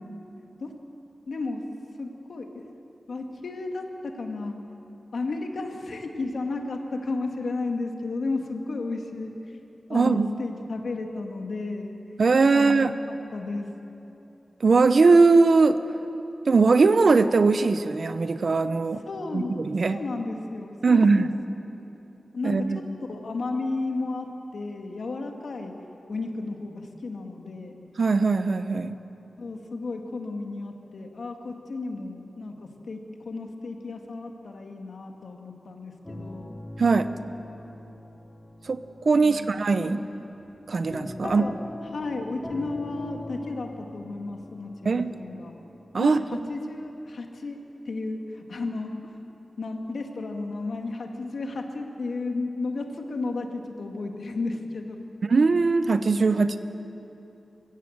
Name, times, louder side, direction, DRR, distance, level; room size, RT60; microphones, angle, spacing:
voice 1, 1.3-1.6 2.0-2.7 3.1-4.6 5.1-9.3 9.9-12.0 12.5-13.7 19.1-19.5 19.9-21.3 22.3-22.8 23.1-25.7 26.1-27.8 29.4-36.6 39.2-39.5 39.8-40.1 41.2-41.5 41.9-45.5 46.0-47.6 47.9-49.1 49.6-55.0, left 3 dB, 75° left, 3 dB, 2.0 m, -33 dB
voice 2, 9.9-10.3 12.2-12.9 14.6-15.8 16.5-19.0 19.3-20.0 20.8-21.3 22.4-22.8 28.0-28.9 36.8-37.1 38.7-38.8 39.0-40.0 40.7-41.5 44.8-45.1 45.9-46.2 55.2-56.6, right 4 dB, 65° right, 11 dB, 0.8 m, -20 dB
sound 1, 36.0-46.6, left 1 dB, 25° left, 3.0 m, -42 dB
21.5 x 16.0 x 7.9 m, 3.0 s
wide cardioid pair, 75°, 0 cm